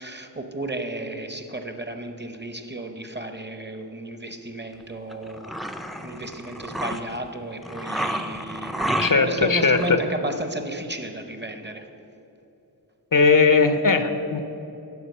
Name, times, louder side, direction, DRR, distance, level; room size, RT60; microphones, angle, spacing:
voice 1, 0.0-5.5 6.0-11.9, right 2 dB, 25° right, 6 dB, 0.8 m, -33 dB
sound 1, 5.1-7.2 7.6-9.4 9.7-9.9, right 1 dB, ahead, 0.4 m, -30 dB
voice 2, 9.0-10.0 13.1-14.4, left 4 dB, 50° left, 9 dB, 0.6 m, -19 dB
9.5 x 5.9 x 6.7 m, 2.9 s
wide cardioid pair, 50°, 41 cm